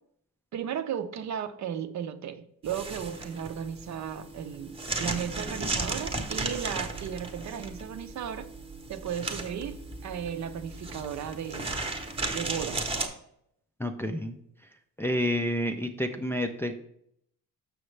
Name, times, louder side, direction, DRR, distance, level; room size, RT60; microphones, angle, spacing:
voice 1, 0.5-8.5 8.9-11.8 12.3-12.9, right 8 dB, 55° right, 10 dB, 0.6 m, -35 dB
sound 1, 2.7-13.1, right 2 dB, 15° right, 0.9 m, -35 dB
voice 2, 13.8-14.3 15.0-16.7, left 1 dB, 5° left, 4 dB, 0.3 m, -29 dB
6.9 x 6.4 x 3.2 m, 0.71 s
cardioid pair, 155°, 34 cm